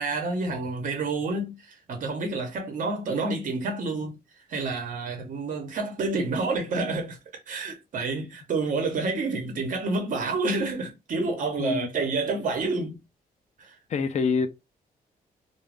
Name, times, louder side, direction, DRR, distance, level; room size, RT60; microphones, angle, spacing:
voice 1, 0.0-4.2 4.5-7.2 7.5-13.0 13.6-13.8, right 3 dB, 55° right, 0.9 m, -29 dB
voice 2, 11.6-11.9 13.9-14.5, left 5 dB, 45° left, 0.5 m, -25 dB
2.4 x 2.2 x 3.3 m
cardioid pair, 125°, 16 cm